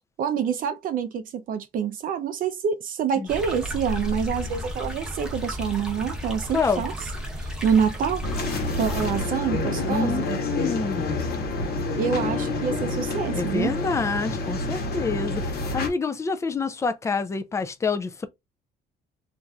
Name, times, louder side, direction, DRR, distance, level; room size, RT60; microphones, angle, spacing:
voice 1, 0.2-6.9 7.4-10.4 12.0-13.7, right 7 dB, 55° right, 0.5 m, -27 dB
sound 1, 3.3-9.2, equal, 5° right, 0.8 m, -33 dB
voice 2, 6.5-6.8 9.8-11.4 13.3-18.3, left 4 dB, 15° left, 0.4 m, -27 dB
sound 2, 8.2-15.9, left 3 dB, 65° left, 1.0 m, -28 dB
3.0 x 2.5 x 2.3 m
cardioid pair, 110°, 17 cm